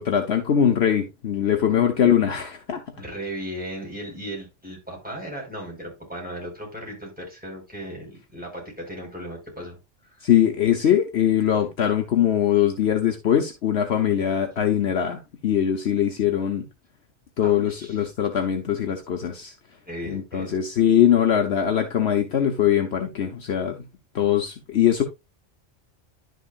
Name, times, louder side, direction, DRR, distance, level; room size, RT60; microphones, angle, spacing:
voice 1, 0.0-2.8 10.2-16.7 17.4-19.5 20.1-23.8 24.1-25.0, left 9 dB, 65° left, 1.2 m, -22 dB
voice 2, 3.0-9.8 10.1-10.2 17.4-18.1 19.8-20.6, equal, 5° right, 4.8 m, -36 dB
11.0 x 6.5 x 2.5 m
omnidirectional pair, 1.2 m